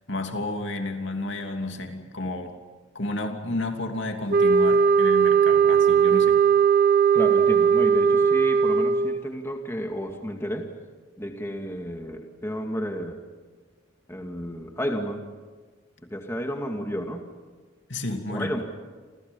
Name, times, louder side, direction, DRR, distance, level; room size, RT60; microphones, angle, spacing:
voice 1, 0.1-2.5 2.9-6.4 17.9-18.5, left 2 dB, 60° left, 4 dB, 2.9 m, -31 dB
sound 1, 4.3-9.2, right 6 dB, 45° right, 1.1 m, -19 dB
voice 2, 7.1-10.7 11.2-13.2 14.1-15.2 16.0-17.2 18.3-18.6, equal, 10° left, 3 dB, 2.2 m, -32 dB
29.5 x 27.5 x 5.5 m, 1.4 s
head